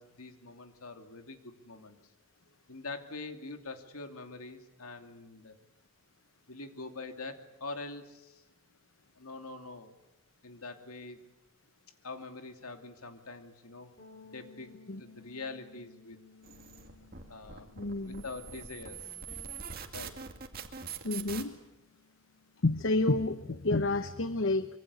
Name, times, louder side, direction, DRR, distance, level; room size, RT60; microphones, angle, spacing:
voice 1, 0.0-2.0 2.7-5.6 6.5-8.4 9.2-9.9 10.4-11.2 12.0-13.9 14.3-14.7 15.0-16.2 17.3-19.0 19.9-20.2, left 3 dB, 85° left, 6 dB, 2.7 m, -44 dB
sound 1, 14.0-23.7, left 4 dB, 35° left, 4.7 m, -59 dB
sound 2, 16.4-21.4, right 6 dB, 45° right, 2.3 m, -43 dB
voice 2, 17.8-18.2 21.0-21.6 22.6-24.7, left 2 dB, 60° left, 11 dB, 0.9 m, -29 dB
25.0 x 24.0 x 8.3 m, 0.92 s
head